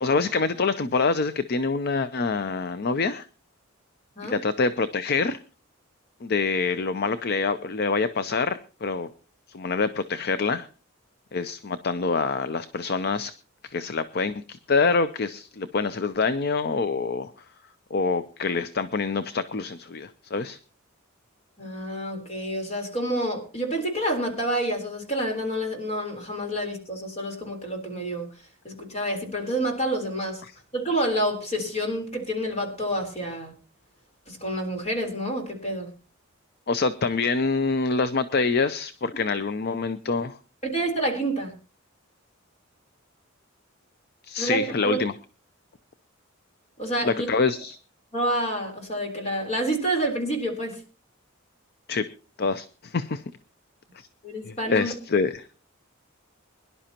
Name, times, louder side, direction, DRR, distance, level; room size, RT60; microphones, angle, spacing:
voice 1, 0.0-3.3 4.2-5.4 6.2-9.1 9.5-10.7 11.3-13.3 13.6-17.3 17.9-20.6 30.4-30.5 36.7-40.4 44.2-45.1 47.0-47.8 51.9-52.1 52.4-53.2 54.0-54.1 54.4-55.5, left 4 dB, 50° left, 12 dB, 0.6 m, -26 dB
voice 2, 21.6-28.3 28.6-30.4 30.7-33.5 34.3-35.9 40.6-41.5 44.4-45.0 46.8-47.3 48.1-50.8 54.2-54.9, right 1 dB, 35° left, 3 dB, 3.8 m, -28 dB
23.0 x 11.0 x 2.9 m, 0.35 s
head